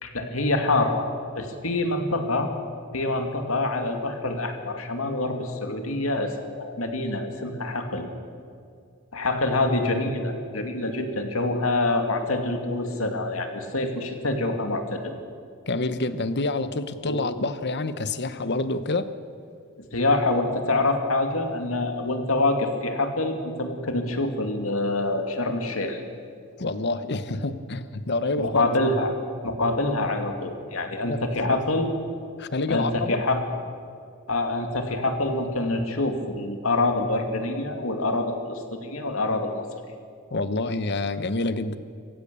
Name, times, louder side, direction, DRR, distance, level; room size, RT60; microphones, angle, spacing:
voice 1, 0.0-1.0 1.4-2.5 2.9-8.1 9.1-15.1 17.0-17.2 19.8-26.0 28.4-29.2 29.4-31.9 32.7-33.4 34.3-39.5, left 2 dB, 80° left, 5 dB, 2.5 m, -26 dB
voice 2, 15.7-19.2 26.6-28.7 31.0-31.6 32.4-33.2 40.3-41.8, left 2 dB, 55° left, 12 dB, 1.0 m, -27 dB
26.5 x 15.5 x 7.0 m, 2.3 s
head